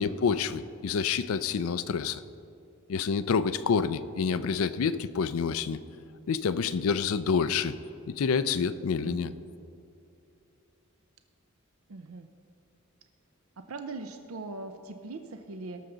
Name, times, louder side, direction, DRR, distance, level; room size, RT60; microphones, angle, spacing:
voice 1, 0.0-2.2 2.9-5.8 6.3-7.8 8.1-9.3, left 6 dB, 85° left, 14 dB, 0.4 m, -28 dB
voice 2, 9.0-9.4 11.9-12.3 13.6-15.8, right 3 dB, 85° right, 7 dB, 0.6 m, -41 dB
18.5 x 6.7 x 3.9 m, 2.7 s
head